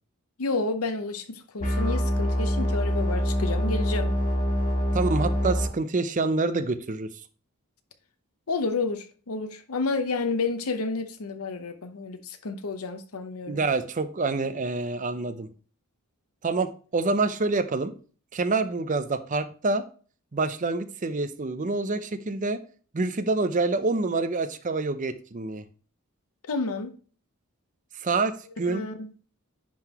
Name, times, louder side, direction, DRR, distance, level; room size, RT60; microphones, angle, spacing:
voice 1, 0.4-4.1 8.5-13.6 26.5-26.9 28.7-29.1, left 3 dB, 85° left, 0.8 m, -30 dB
sound 1, 1.6-5.7, equal, 35° left, 1.6 m, -25 dB
voice 2, 4.9-7.1 13.5-15.5 16.4-17.9 18.3-19.8 20.3-22.6 22.9-25.7 28.0-28.8, right 3 dB, 35° right, 0.6 m, -27 dB
10.5 x 3.9 x 2.9 m
head